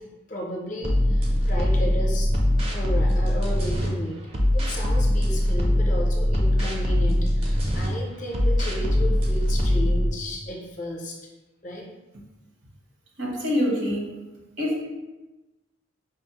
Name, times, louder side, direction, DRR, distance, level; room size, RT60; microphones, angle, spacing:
voice 1, 0.3-2.3 2.7-4.2 4.5-11.2 11.6-11.8, equal, 40° left, -1 dB, 0.5 m, -34 dB
sound 1, 0.8-3.9 4.3-7.9 8.3-10.1, left 1 dB, 30° right, 0.5 m, -22 dB
voice 2, 13.2-14.0 14.6-14.8, left 1 dB, 65° right, -2 dB, 0.9 m, -25 dB
5.0 x 2.0 x 2.8 m, 1.1 s
head